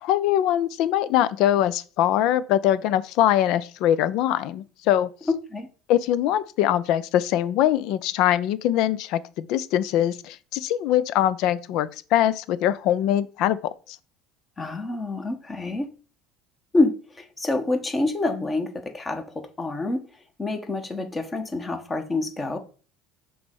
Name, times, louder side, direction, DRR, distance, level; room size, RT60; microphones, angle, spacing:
voice 1, 0.0-5.1 5.9-13.7, left 11 dB, 70° left, 0.5 m, -22 dB
voice 2, 5.3-5.7 14.6-15.9 16.7-20.1 20.4-22.6, left 2 dB, 25° left, 1.2 m, -27 dB
6.0 x 3.2 x 5.4 m
supercardioid pair, 85°, 0 cm